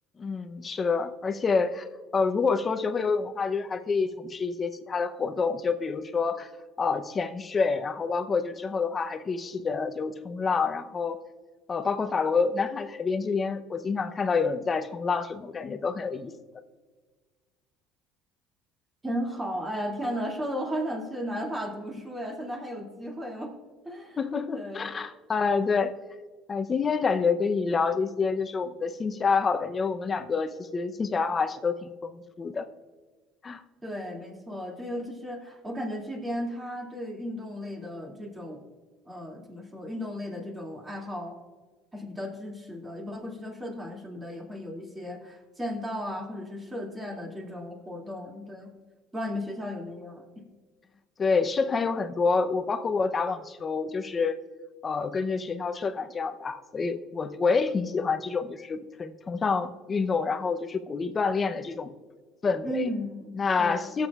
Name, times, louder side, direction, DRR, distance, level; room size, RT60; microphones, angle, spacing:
voice 1, 0.2-1.9 2.1-6.5 6.8-11.2 11.7-16.3 24.2-25.9 26.5-32.7 33.4-33.6 51.2-54.4 54.8-61.9 62.4-62.9 63.4-64.1, left 5 dB, 30° left, 9 dB, 0.7 m, -27 dB
voice 2, 19.0-23.5 23.8-24.2 24.5-24.9 33.8-38.6 39.1-41.4 41.9-48.7 49.1-50.2 62.6-64.0, equal, 15° right, 0 dB, 2.4 m, -35 dB
17.5 x 7.4 x 2.4 m, 1.4 s
supercardioid pair, 105°, 0 cm